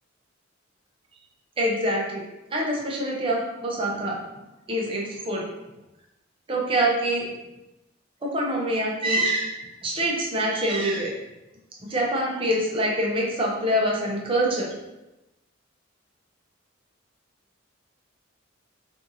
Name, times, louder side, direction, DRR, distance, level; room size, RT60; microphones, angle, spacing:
voice 1, 1.6-2.2 2.5-4.2 4.7-5.4 6.5-7.3 8.2-11.1 11.9-14.7, right 1 dB, 25° right, -2 dB, 0.6 m, -25 dB
2.6 x 2.6 x 2.6 m, 0.98 s
head